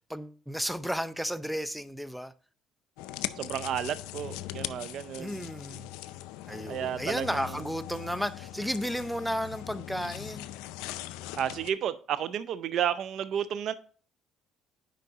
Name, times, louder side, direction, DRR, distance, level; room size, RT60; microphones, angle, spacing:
voice 1, 0.1-2.3 5.1-5.9 6.5-10.5, equal, ahead, 0.5 m, -33 dB
sound 1, 3.0-11.7, left 15 dB, 85° left, 0.4 m, -40 dB
voice 2, 3.4-5.5 6.7-7.6 11.3-13.7, right 9 dB, 60° right, 0.5 m, -32 dB
9.1 x 5.2 x 2.8 m
supercardioid pair, 80°, 0 cm